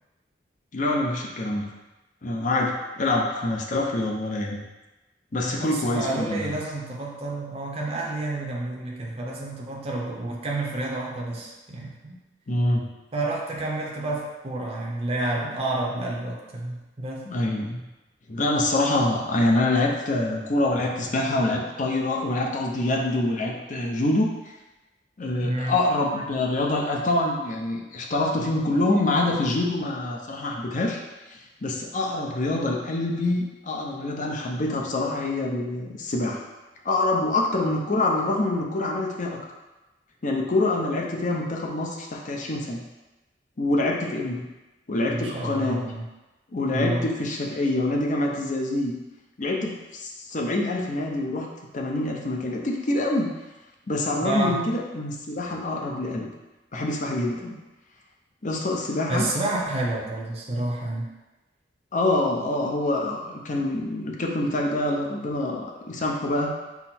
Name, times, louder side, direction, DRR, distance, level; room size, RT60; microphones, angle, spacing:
voice 1, 0.7-1.7 2.2-4.6 5.3-6.6 12.5-12.9 17.3-17.8 18.3-24.5 25.2-31.0 31.3-36.4 36.8-39.4 40.2-42.8 43.6-44.4 44.9-45.8 46.5-48.9 49.4-51.5 51.7-53.3 53.9-56.3 56.7-57.6 58.4-59.3 61.9-66.5, left 2 dB, 45° left, 0 dB, 0.7 m, -25 dB
voice 2, 5.4-12.2 13.1-17.3 25.4-25.8 45.1-46.0 46.7-47.0 54.2-54.6 59.1-61.1, right 2 dB, 35° right, -3 dB, 0.7 m, -29 dB
5.8 x 2.1 x 4.3 m, 1.1 s
head